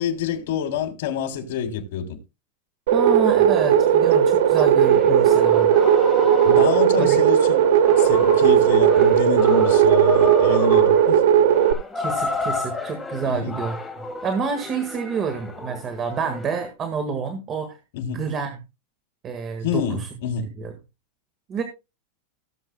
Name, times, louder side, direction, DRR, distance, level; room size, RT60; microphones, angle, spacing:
voice 1, 0.0-2.2 6.4-7.6 7.9-11.2 13.2-13.6 17.9-18.3 19.6-20.5, left 7 dB, 65° left, 3.1 m, -27 dB
voice 2, 2.9-5.7 7.0-7.2 11.9-13.8 14.2-17.8 18.1-18.6 19.2-20.1 20.6-20.7 21.5-21.6, right 5 dB, 25° right, 1.6 m, -28 dB
sound 1, 2.9-11.7, right 9 dB, 80° right, 1.3 m, -16 dB
sound 2, 3.5-16.7, left 4 dB, 5° left, 1.7 m, -33 dB
18.0 x 7.7 x 2.2 m
supercardioid pair, 155°, 0 cm